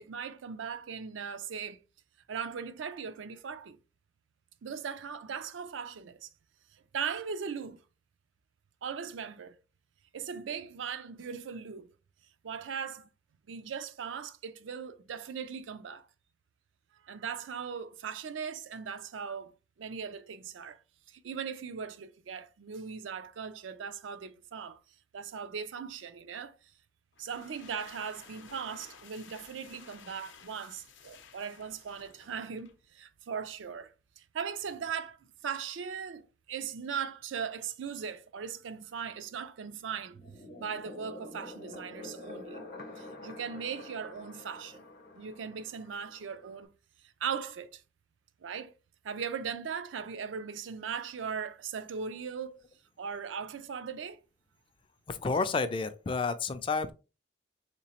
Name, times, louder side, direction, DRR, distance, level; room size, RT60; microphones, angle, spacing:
voice 1, 0.0-1.8 2.3-3.8 4.6-6.3 6.9-7.8 8.8-9.6 10.1-11.9 12.4-13.1 13.5-16.1 17.0-19.5 19.8-20.8 21.1-24.8 25.1-26.6 27.2-35.2 35.4-42.6 43.0-44.8 45.1-46.7 47.2-47.8 48.4-48.8 49.0-52.6 53.0-54.2, right 6 dB, 90° right, 0.4 m, -39 dB
sound 1, 27.1-32.9, left 6 dB, 85° left, 0.6 m, -54 dB
sound 2, 40.1-46.7, left 2 dB, 50° left, 0.8 m, -48 dB
voice 2, 55.1-56.9, left 4 dB, 25° left, 0.3 m, -30 dB
3.8 x 2.9 x 2.8 m
head